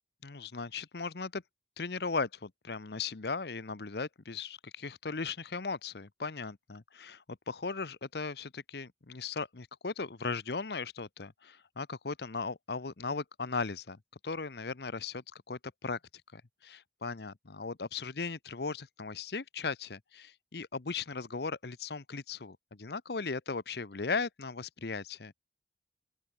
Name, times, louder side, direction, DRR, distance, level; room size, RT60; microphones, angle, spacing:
voice 1, 0.2-1.4 1.8-14.0 14.2-16.0 16.3-25.3, left 4 dB, 65° left, 0.9 m, -37 dB
open air
head